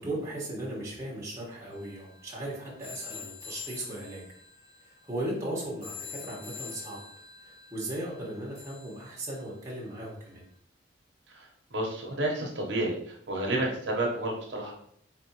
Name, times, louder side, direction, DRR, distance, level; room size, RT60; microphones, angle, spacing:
voice 1, 0.0-4.2 4.8-7.0 7.4-10.4, right 1 dB, 15° right, -5 dB, 1.2 m, -37 dB
sound 1, 1.7-9.8, left 6 dB, 30° left, 1.1 m, -46 dB
voice 2, 11.3-14.7, right 1 dB, 75° right, -1 dB, 0.9 m, -31 dB
4.2 x 3.4 x 2.9 m, 0.65 s
head